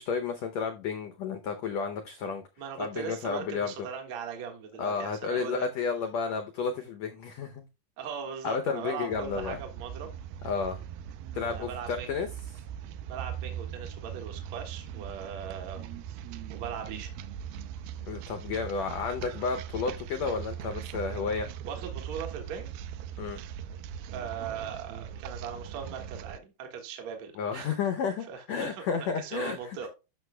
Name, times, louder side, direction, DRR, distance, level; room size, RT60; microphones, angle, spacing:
voice 1, 0.0-2.4 2.8-3.7 4.8-7.7 8.4-9.6 10.4-10.8 11.3-12.3 18.0-21.5 23.2-23.4 27.4-29.9, left 5 dB, 90° left, 1.5 m, -32 dB
voice 2, 2.6-5.7 8.0-10.1 11.5-12.2 13.1-15.8 16.5-17.1 21.7-22.7 24.1-27.8 28.3-29.9, right 7 dB, 55° right, 2.5 m, -39 dB
sound 1, 9.1-26.4, right 9 dB, 85° right, 2.4 m, -40 dB
13.0 x 6.1 x 2.2 m
omnidirectional pair, 4.1 m